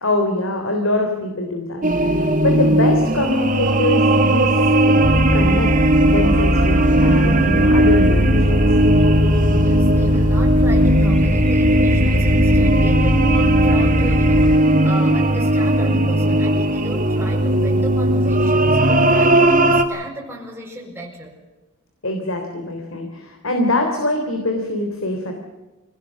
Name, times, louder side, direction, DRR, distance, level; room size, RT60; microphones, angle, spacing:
voice 1, 0.0-5.7 6.0-8.6 22.0-25.3, left 1 dB, 65° left, 4 dB, 3.4 m, -23 dB
sound 1, 1.8-19.8, right 1 dB, 40° right, 1.9 m, -17 dB
sound 2, 5.0-14.6, left 1 dB, 30° left, 0.7 m, -21 dB
voice 2, 9.6-14.5 14.8-21.4, right 1 dB, 10° right, -4 dB, 4.5 m, -34 dB
25.5 x 18.5 x 7.4 m, 1.1 s
head